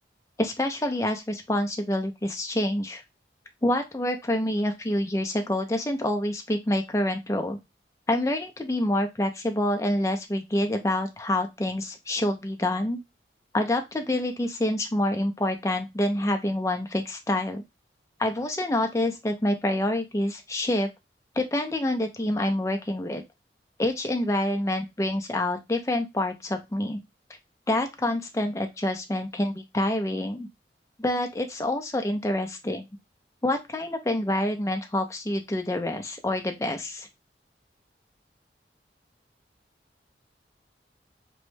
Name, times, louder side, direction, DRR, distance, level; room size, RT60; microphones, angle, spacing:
voice 1, 0.4-3.0 3.6-7.6 8.1-13.0 13.5-17.6 18.2-20.9 21.4-23.2 23.8-27.0 27.7-30.5 31.0-32.8 33.4-37.1, left 1 dB, 15° left, 5 dB, 0.4 m, -27 dB
3.0 x 2.1 x 3.2 m, 0.21 s
head